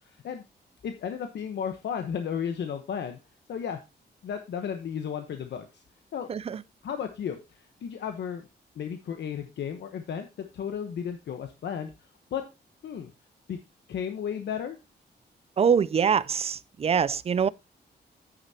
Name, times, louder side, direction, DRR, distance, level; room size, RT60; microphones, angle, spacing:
voice 1, 0.8-3.2 3.5-3.8 4.2-5.7 6.1-6.3 6.8-7.4 7.8-8.5 8.8-10.3 10.5-11.9 12.3-12.4 12.8-13.1 13.5-13.6 13.9-14.8, left 8 dB, 80° left, 1.0 m, -33 dB
voice 2, 15.6-17.5, right 7 dB, 35° right, 0.4 m, -24 dB
9.8 x 8.8 x 2.8 m
wide cardioid pair, 135°, 18 cm